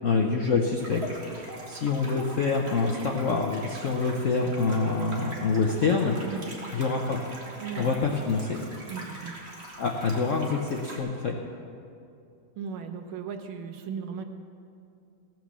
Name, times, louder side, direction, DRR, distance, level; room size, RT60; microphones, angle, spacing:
voice 1, 0.0-1.0 1.3-6.2 6.7-7.2 7.8-8.6 9.8-11.3, left 4 dB, 65° left, 1 dB, 0.7 m, -26 dB
sound 1, 0.8-11.0, right 1 dB, 30° right, 1.9 m, -43 dB
voice 2, 7.6-7.9 8.9-9.4 12.6-14.2, right 6 dB, 85° right, 6 dB, 1.7 m, -36 dB
16.0 x 6.1 x 7.3 m, 2.5 s
omnidirectional pair, 2.2 m